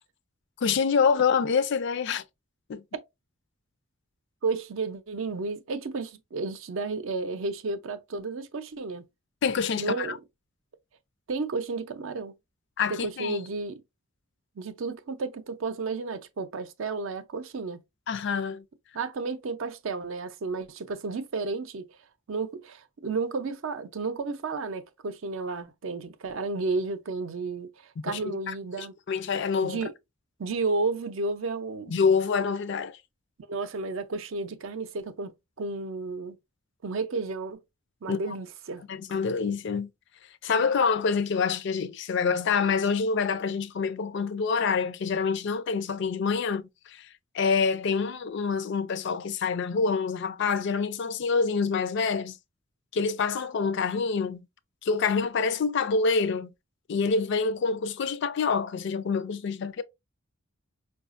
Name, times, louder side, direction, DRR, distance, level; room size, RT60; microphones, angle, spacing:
voice 1, 0.6-2.2 2.7-2.8 9.4-10.2 12.8-13.4 18.1-18.6 28.1-29.8 31.9-33.0 38.1-38.2 38.9-39.9 40.4-47.1 47.3-52.4 52.9-54.4 54.8-56.5 56.9-59.8, left 5 dB, 55° left, 0.4 m, -26 dB
voice 2, 4.4-9.0 9.8-10.2 11.3-12.3 12.9-13.8 14.6-17.8 18.9-21.9 22.3-28.9 29.6-29.9 30.4-31.9 33.5-35.3 35.6-36.4 36.8-37.6 38.0-38.8, right 3 dB, 70° right, 0.5 m, -32 dB
4.8 x 2.3 x 2.4 m
head